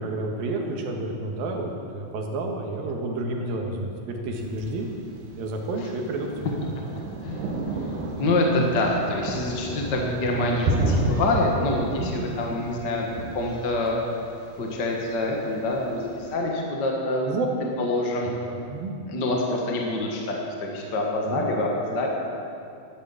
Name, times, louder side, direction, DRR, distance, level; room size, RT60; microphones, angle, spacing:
voice 1, 0.0-4.9 5.4-6.6 8.2-8.3 11.9-12.1 17.3-17.5 18.2-18.9 21.2-21.5, right 2 dB, 85° right, 1 dB, 3.4 m, -30 dB
Thunder, 4.4-16.3, right 2 dB, 65° right, 2.9 m, -32 dB
voice 2, 8.2-13.1 13.3-14.0 14.6-17.3 17.8-18.3 19.1-22.1, left 2 dB, 40° left, -1 dB, 1.6 m, -26 dB
13.0 x 12.0 x 7.2 m, 2.5 s
omnidirectional pair, 4.1 m